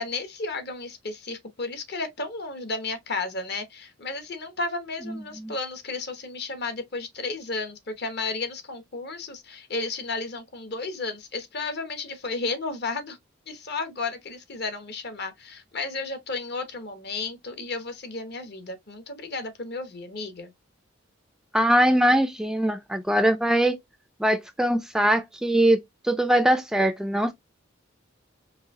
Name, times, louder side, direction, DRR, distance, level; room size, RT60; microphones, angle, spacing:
voice 1, 0.0-13.2 13.5-20.5, left 3 dB, 55° left, 1.0 m, -33 dB
voice 2, 21.5-23.8 24.2-25.8 26.0-27.3, right 1 dB, 5° right, 0.3 m, -21 dB
4.7 x 2.7 x 3.5 m
head